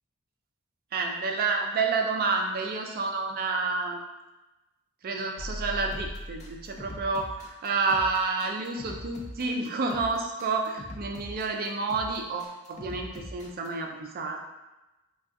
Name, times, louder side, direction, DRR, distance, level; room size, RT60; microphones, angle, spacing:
voice 1, 0.9-4.0 5.0-14.4, right 4 dB, 45° right, 2 dB, 0.4 m, -29 dB
sound 1, 5.4-7.2, left 1 dB, 80° left, 0.6 m, -39 dB
sound 2, 5.9-13.7, left 1 dB, 30° left, 0.4 m, -43 dB
3.6 x 2.3 x 2.5 m, 1.0 s
head